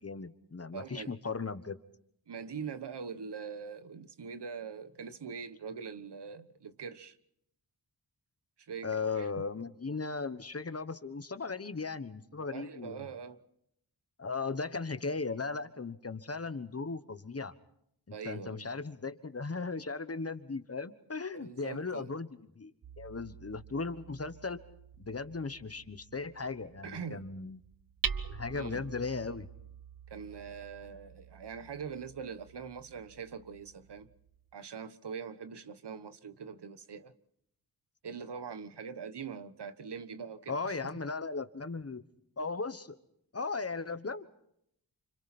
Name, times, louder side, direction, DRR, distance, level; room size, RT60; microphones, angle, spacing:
voice 1, 0.0-1.8 8.8-13.1 14.2-17.5 18.1-22.3 22.6-24.6 25.0-27.6 28.2-29.5 40.5-42.0 42.4-43.0 43.3-44.2, left 4 dB, 35° left, 1.3 m, -37 dB
voice 2, 0.7-1.2 2.3-7.2 8.6-9.4 12.5-13.4 18.1-18.7 21.3-22.1 26.8-27.3 28.5-28.9 30.1-34.1 34.5-37.1 38.0-40.8, right 6 dB, 70° right, 1.3 m, -43 dB
Hammer, 22.8-34.5, right 6 dB, 55° right, 1.0 m, -45 dB
29.5 x 26.5 x 4.3 m
wide cardioid pair, 110°, 42 cm